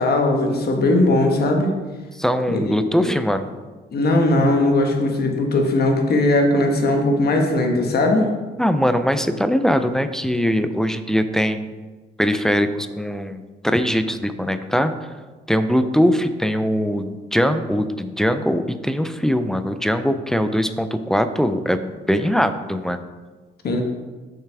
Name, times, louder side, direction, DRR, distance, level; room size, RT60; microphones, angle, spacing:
voice 1, 0.0-1.7 2.5-3.1 3.9-8.3 23.6-23.8, left 2 dB, 55° left, 2 dB, 1.3 m, -19 dB
voice 2, 2.1-3.5 8.6-11.8 12.2-15.1 15.5-23.0, equal, ahead, 10 dB, 0.4 m, -21 dB
6.8 x 5.7 x 3.4 m, 1.3 s
cardioid pair, 90°, 20 cm